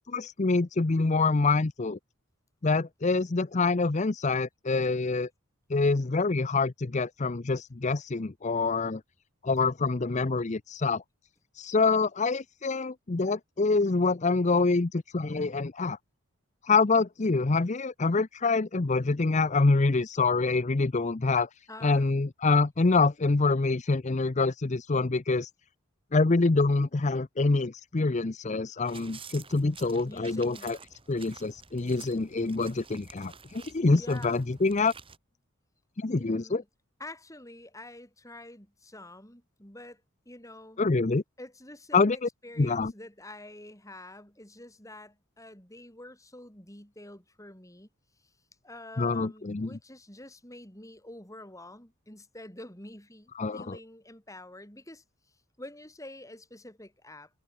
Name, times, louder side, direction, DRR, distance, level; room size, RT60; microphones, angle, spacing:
voice 1, 0.1-2.0 2.6-5.3 5.7-9.0 9.4-11.0 11.5-16.0 16.6-21.5 21.8-25.5 26.1-30.8 31.1-34.9 36.0-36.6 40.8-41.2 41.9-42.3 42.6-42.9 49.0-49.7 53.4-53.8, left 3 dB, 35° left, 0.6 m, -26 dB
voice 2, 21.7-22.1 30.1-30.7 33.8-34.4 36.0-36.7 37.0-40.0 40.3-40.8 41.4-47.9 48.6-55.0 55.6-57.3, left 1 dB, 15° left, 6.2 m, -47 dB
sound 1, 28.9-35.2, right 5 dB, 25° right, 7.2 m, -50 dB
head